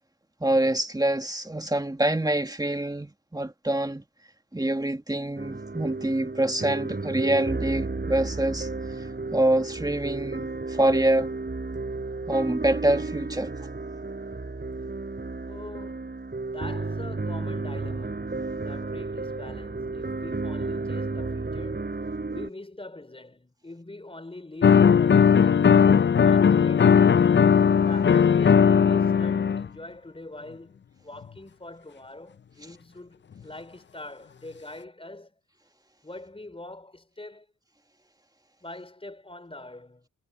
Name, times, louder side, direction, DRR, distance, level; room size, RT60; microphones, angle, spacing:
voice 1, 0.4-4.0 4.5-8.7 9.0-11.3 12.3-13.5, right 1 dB, 10° right, 2.2 m, -25 dB
sound 1, 5.4-22.5, right 3 dB, 30° right, 5.2 m, -33 dB
voice 2, 15.5-16.3 16.5-22.0 22.3-27.4 27.8-35.3 36.0-37.5 38.6-40.1, left 2 dB, 15° left, 4.4 m, -43 dB
sound 2, 24.6-29.7, left 7 dB, 35° left, 0.6 m, -18 dB
cardioid pair, 65°, 34 cm